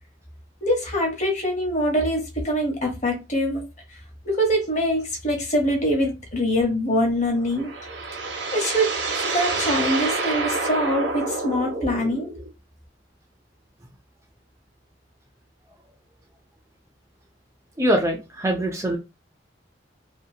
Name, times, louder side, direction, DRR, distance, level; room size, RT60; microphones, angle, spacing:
voice 1, 0.6-3.6 4.2-7.7 8.5-9.0 9.2-12.3, equal, 40° left, 1 dB, 1.0 m, -24 dB
sound 1, 7.3-12.5, right 3 dB, 75° right, 0.8 m, -28 dB
voice 2, 17.8-19.0, right 1 dB, 15° right, 2 dB, 0.4 m, -23 dB
2.7 x 2.5 x 2.7 m, 0.26 s
head